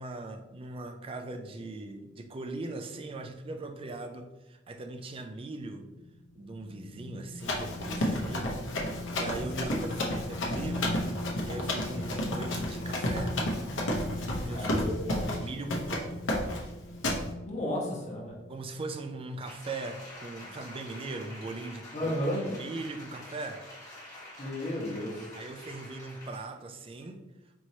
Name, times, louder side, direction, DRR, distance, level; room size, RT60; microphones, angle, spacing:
voice 1, 0.0-5.9 6.4-8.6 9.2-11.0 11.5-13.4 14.4-14.7 15.4-16.2 18.5-22.2 22.5-23.7 25.3-27.2, right 2 dB, 30° right, 6 dB, 0.4 m, -40 dB
sound 1, 5.9-18.6 19.1-19.3, left 1 dB, 65° left, 0.4 m, -41 dB
Run, 7.4-15.5 15.7-16.0 16.3-16.7 17.0-17.2, left 1 dB, 85° left, 0.8 m, -32 dB
voice 2, 14.5-15.3 17.4-18.3 21.9-22.4 24.4-25.2, left 1 dB, 35° left, -3 dB, 1.0 m, -33 dB
Applause, 19.4-26.6 27.0-27.1, left 1 dB, 20° left, 1.3 m, -47 dB
4.5 x 3.0 x 2.8 m, 1.0 s
head